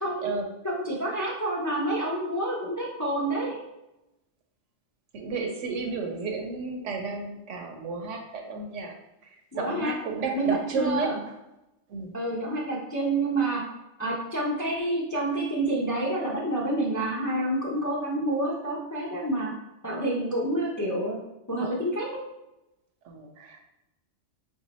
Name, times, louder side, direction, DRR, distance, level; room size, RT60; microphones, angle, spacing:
voice 1, 0.6-3.6 9.5-9.9 10.3-11.2 12.1-13.6 14.0-19.5 19.8-21.2 21.5-22.1, right 1 dB, 25° left, -4 dB, 0.5 m, -28 dB
voice 2, 5.1-8.9 9.6-11.1 11.9-12.1 23.0-23.6, right 4 dB, 75° right, 3 dB, 1.0 m, -32 dB
3.3 x 2.7 x 4.2 m, 0.93 s
omnidirectional pair, 1.3 m